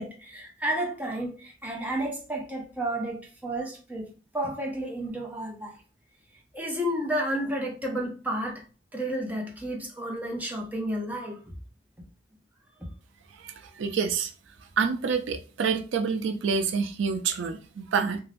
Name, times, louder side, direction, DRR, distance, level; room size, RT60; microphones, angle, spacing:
voice 1, 0.0-4.1 4.3-5.7 6.5-8.6 8.9-11.4, right 1 dB, 10° right, 0.6 m, -31 dB
voice 2, 13.3-14.3 14.8-18.2, right 5 dB, 80° right, 0.4 m, -27 dB
2.5 x 2.2 x 3.3 m
head